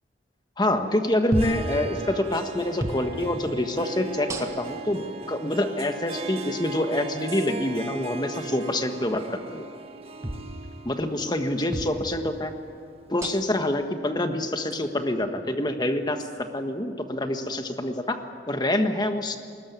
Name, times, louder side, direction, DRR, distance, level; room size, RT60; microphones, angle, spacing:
voice 1, 0.6-9.6 10.8-12.5 13.1-19.4, left 1 dB, 25° left, 6 dB, 1.5 m, -26 dB
sound 1, 1.3-1.7 2.8-3.0 4.3-4.8 5.8-5.9 7.3-7.5 10.2-10.5 11.7-12.0 13.2-13.6 14.7-14.8 16.2-16.4, right 1 dB, 15° right, 1.6 m, -32 dB
Harp, 1.3-13.2, right 4 dB, 35° right, 1.3 m, -39 dB
21.5 x 19.5 x 9.6 m, 2.2 s
head